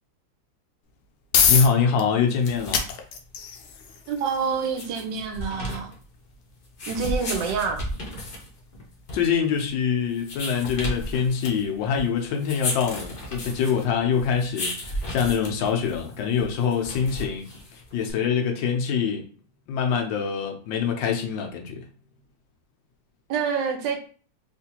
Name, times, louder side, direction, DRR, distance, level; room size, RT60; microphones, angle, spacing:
sound 1, 0.8-15.7, left 7 dB, 70° left, 1.0 m, -32 dB
voice 1, 1.5-2.8 9.1-19.3 19.7-21.9, left 6 dB, 90° left, 1.4 m, -25 dB
sound 2, 2.2-18.1, left 1 dB, 45° left, 0.7 m, -35 dB
voice 2, 4.1-5.9 6.9-7.8 23.3-24.0, right 6 dB, 80° right, 1.4 m, -27 dB
3.7 x 2.5 x 2.8 m
omnidirectional pair, 2.0 m